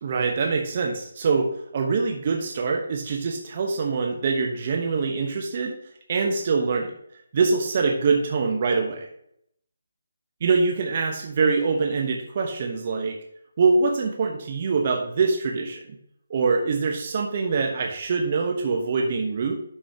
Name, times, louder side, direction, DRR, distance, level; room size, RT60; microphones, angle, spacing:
voice 1, 0.0-5.7 6.1-6.9 7.3-9.1 10.4-13.2 13.6-15.8 16.3-19.5, right 4 dB, 40° right, 2 dB, 1.1 m, -24 dB
11.5 x 5.5 x 2.9 m, 0.72 s
figure-of-eight pair, 150°, 0 cm